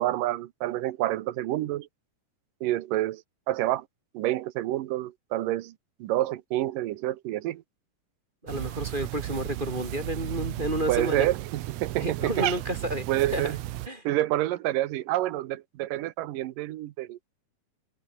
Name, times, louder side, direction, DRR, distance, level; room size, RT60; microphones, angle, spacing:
voice 1, 0.0-1.9 2.6-3.2 3.5-3.9 4.1-5.7 6.0-7.6 10.9-12.3 13.1-13.6 14.0-17.3, right 15 dB, 90° right, 2.7 m, -28 dB
voice 2, 8.4-11.3 12.0-13.5 13.9-14.1, right 1 dB, 15° right, 4.9 m, -31 dB
Cat, 8.5-13.9, right 16 dB, 75° right, 1.7 m, -34 dB
omnidirectional pair, 3.7 m